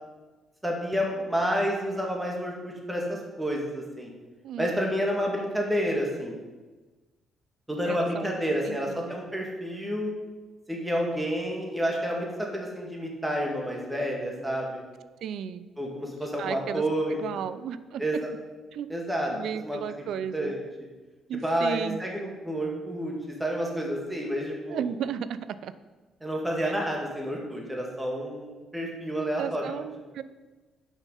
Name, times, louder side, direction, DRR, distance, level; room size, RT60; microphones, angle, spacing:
voice 1, 0.6-4.1 4.6-6.3 7.7-10.1 10.7-14.8 15.8-17.4 18.0-18.3 18.9-19.3 19.7-19.8 20.3-20.6 21.4-24.9 26.2-29.7, equal, 10° right, -1 dB, 1.8 m, -29 dB
voice 2, 4.4-5.1 7.8-8.3 8.6-9.2 15.2-15.7 16.4-16.8 17.2-18.0 18.7-18.9 19.3-20.5 21.3-22.0 24.7-25.7 26.6-26.7 29.4-30.2, right 8 dB, 75° right, 14 dB, 0.4 m, -34 dB
6.0 x 5.6 x 5.4 m, 1.3 s
cardioid pair, 90°, 0 cm